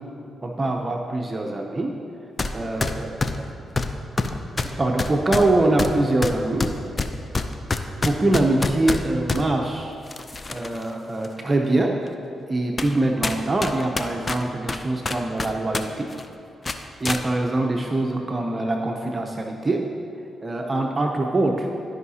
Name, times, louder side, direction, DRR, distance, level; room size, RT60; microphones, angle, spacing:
voice 1, 0.4-2.0 2.5-3.1 4.8-6.7 8.0-9.9 10.5-12.0 12.5-16.1 16.7-19.9 20.4-21.7, right 2 dB, 30° right, 2 dB, 0.6 m, -23 dB
sound 1, 2.4-2.5 2.8-9.4 10.1-10.8 11.2-11.3 12.1-12.2 12.8-13.0 13.2-15.8 16.1-16.3 16.6-17.2, left 3 dB, 35° left, 0.5 m, -26 dB
12.0 x 5.5 x 2.8 m, 2.6 s
supercardioid pair, 55°, 0 cm